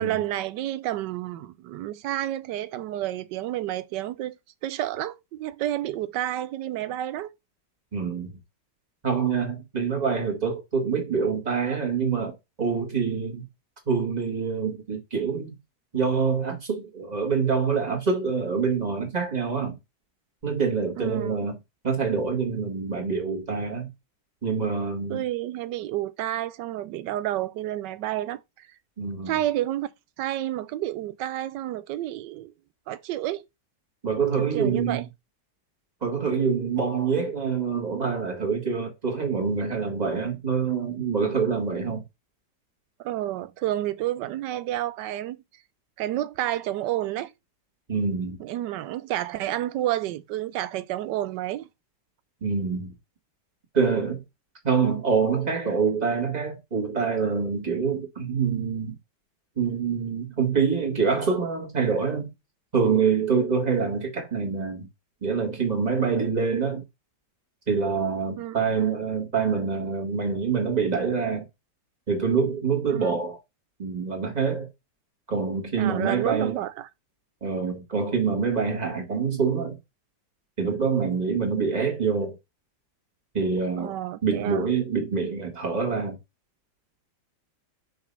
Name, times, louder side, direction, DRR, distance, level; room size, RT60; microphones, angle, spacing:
voice 1, 0.0-7.3 21.0-21.5 25.1-28.7 29.3-29.9 30.2-32.5 32.9-33.4 34.4-35.0 43.0-45.4 46.0-47.3 48.4-51.7 68.4-68.6 72.9-73.2 75.8-76.9 83.8-84.6, right 13 dB, 85° right, 1.2 m, -30 dB
voice 2, 7.9-8.4 9.0-13.5 13.9-15.6 15.9-19.8 20.4-21.6 21.8-23.9 24.4-25.2 29.0-29.4 34.0-35.0 36.0-42.0 47.9-48.4 52.4-53.0 53.7-54.2 54.6-59.0 59.6-62.3 62.7-64.9 65.2-66.8 67.7-71.5 72.1-73.4 73.8-74.7 75.3-76.6 77.4-79.8 80.6-82.4 83.3-83.9 84.2-86.2, right 5 dB, 25° right, 2.1 m, -26 dB
5.0 x 3.8 x 5.5 m
omnidirectional pair, 1.8 m